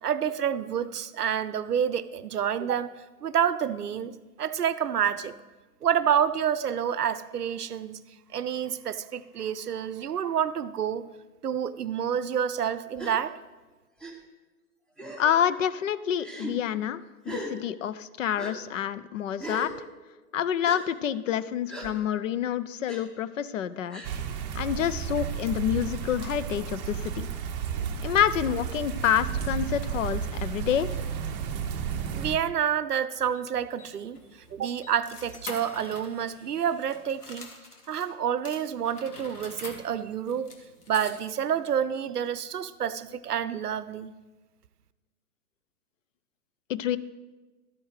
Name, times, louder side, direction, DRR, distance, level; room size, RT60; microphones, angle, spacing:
voice 1, 0.0-2.9 3.2-5.3 5.8-8.0 8.3-11.1 11.4-13.3 32.1-34.2 34.5-37.5 37.9-40.5 40.9-44.1, right 8 dB, 85° right, 15 dB, 0.6 m, -28 dB
Gasp, 13.0-13.2 14.0-14.1 15.0-15.4 16.2-16.5 17.2-17.5 18.4-18.5 19.4-19.7 20.6-20.8 21.7-21.9 22.9-23.0 23.9-24.1, right 1 dB, ahead, 0.8 m, -37 dB
voice 2, 15.2-17.0 17.3-19.7 20.3-24.0 24.5-27.3 28.0-31.0 46.7-47.0, left 9 dB, 55° left, 15 dB, 0.6 m, -28 dB
sound 1, 24.0-32.4, right 7 dB, 30° right, 0.6 m, -32 dB
sound 2, 33.3-38.1 38.4-41.5, left 3 dB, 80° left, 1.6 m, -46 dB
12.5 x 8.7 x 3.2 m, 1.2 s
figure-of-eight pair, 110°, 45 cm